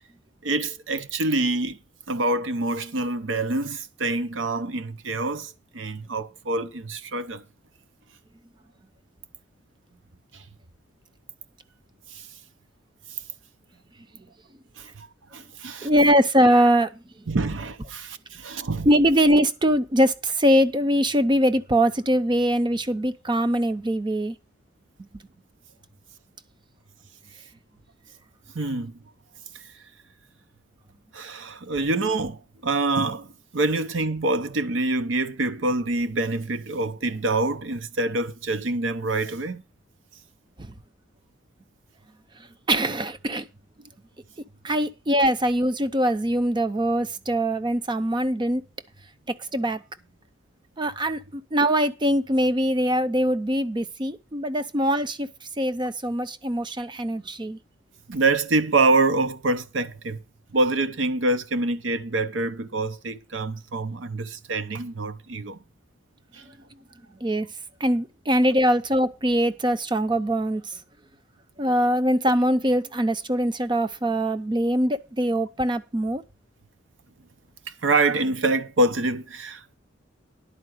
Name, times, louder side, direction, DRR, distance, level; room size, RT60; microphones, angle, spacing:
voice 1, 0.4-1.8 2.1-7.4 10.3-10.4 12.1-12.3 14.8-15.1 15.3-16.1 17.3-18.9 28.5-29.0 31.1-39.6 58.1-60.2 60.5-65.6 66.3-66.5 77.8-79.7, right 2 dB, 75° right, 0.8 m, -26 dB
voice 2, 15.8-16.9 18.9-24.3 40.6-40.7 42.7-43.5 44.6-48.6 49.5-49.8 50.8-55.3 55.6-57.6 67.2-67.5 67.8-70.8 71.6-76.2, equal, 25° right, 0.6 m, -22 dB
11.0 x 4.7 x 7.8 m
head